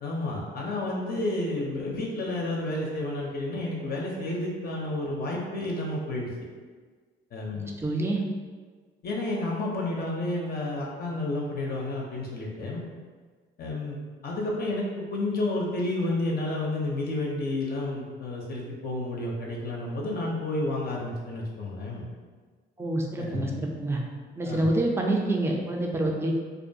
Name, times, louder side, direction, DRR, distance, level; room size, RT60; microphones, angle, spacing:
voice 1, 0.0-6.3 7.3-7.8 9.0-12.8 13.6-22.1 23.2-23.7 24.4-24.7, left 2 dB, 50° left, -2 dB, 0.5 m, -31 dB
voice 2, 7.8-8.2 22.8-24.0 24.4-26.3, right 1 dB, 15° right, 0 dB, 0.4 m, -27 dB
2.4 x 2.2 x 2.6 m, 1.5 s
cardioid pair, 90°, 20 cm